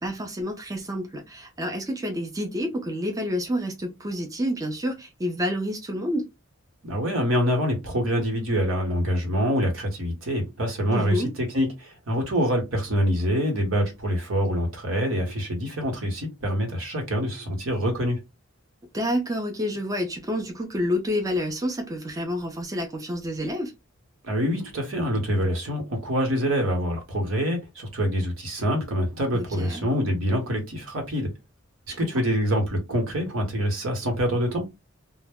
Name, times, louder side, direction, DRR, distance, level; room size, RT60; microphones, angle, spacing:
voice 1, 0.0-6.3 10.9-11.3 18.9-23.7 29.3-29.8 31.9-32.1, equal, 15° right, 0.4 m, -29 dB
voice 2, 6.8-11.2 11.5-18.2 24.2-31.3 31.9-34.6, equal, 70° right, 1.0 m, -25 dB
2.1 x 2.0 x 3.4 m
head